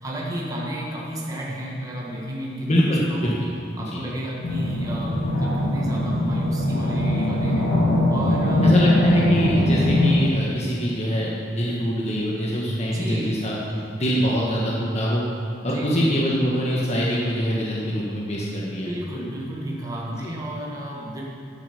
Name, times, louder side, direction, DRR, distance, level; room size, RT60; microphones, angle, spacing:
voice 1, 0.0-3.3 3.7-7.7 8.1-8.8 12.8-13.5 15.6-16.2 18.8-21.2, right 1 dB, 20° right, -4 dB, 1.6 m, -32 dB
voice 2, 2.6-3.3 3.9-4.0 8.6-15.2 15.6-18.9 20.1-20.3, equal, 35° left, -5 dB, 1.4 m, -24 dB
sound 1, 4.4-10.1, left 1 dB, 80° left, 2.5 m, -21 dB
12.5 x 7.0 x 5.7 m, 2.3 s
head